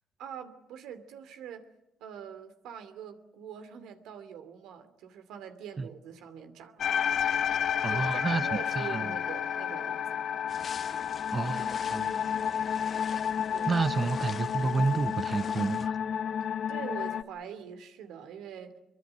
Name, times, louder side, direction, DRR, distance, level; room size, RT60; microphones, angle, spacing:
voice 1, 0.2-1.7 2.0-6.9 7.9-10.2 13.5-13.8 16.7-18.7, right 8 dB, 90° right, 2.6 m, -44 dB
sound 1, 6.8-17.2, left 8 dB, 65° left, 1.2 m, -31 dB
voice 2, 7.8-8.5 8.8-9.1 11.3-12.6 13.7-16.0, right 4 dB, 35° right, 0.9 m, -30 dB
sound 2, 10.5-15.9, left 6 dB, 45° left, 1.0 m, -45 dB
24.0 x 23.0 x 7.9 m
cardioid pair, 90°, 0 cm